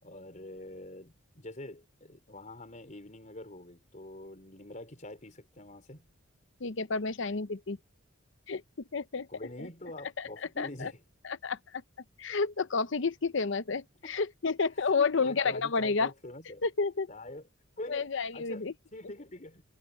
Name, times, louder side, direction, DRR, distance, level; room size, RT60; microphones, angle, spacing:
voice 1, 0.0-6.1 9.3-11.0 14.0-14.1 14.8-16.6 17.1-19.6, left 1 dB, 35° left, 4.5 m, -45 dB
voice 2, 6.6-7.8 8.5-8.6 8.9-9.3 9.6-9.7 10.2-10.3 10.6-10.9 11.2-11.8 12.2-16.1 16.6-17.1 17.9-18.7, left 4 dB, 60° left, 0.7 m, -30 dB
head